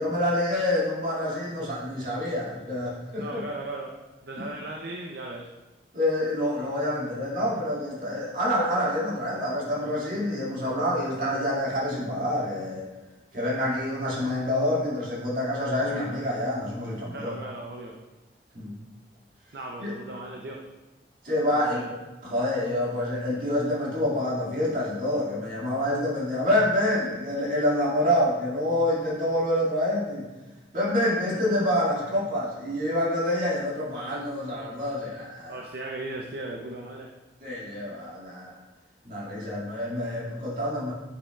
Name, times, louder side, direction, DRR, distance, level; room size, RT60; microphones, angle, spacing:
voice 1, 0.0-3.4 4.4-4.5 5.9-12.8 13.3-17.3 18.5-18.7 19.8-19.9 21.2-21.9 22.2-30.2 30.7-35.6 37.4-38.5 39.0-40.9, left 1 dB, 50° right, -7 dB, 2.1 m, -27 dB
voice 2, 3.2-3.9 4.2-5.5 17.1-18.0 19.5-20.6 21.5-21.8 35.5-37.1, right 2 dB, 65° right, 0 dB, 0.6 m, -37 dB
8.3 x 5.5 x 2.3 m, 1.1 s
head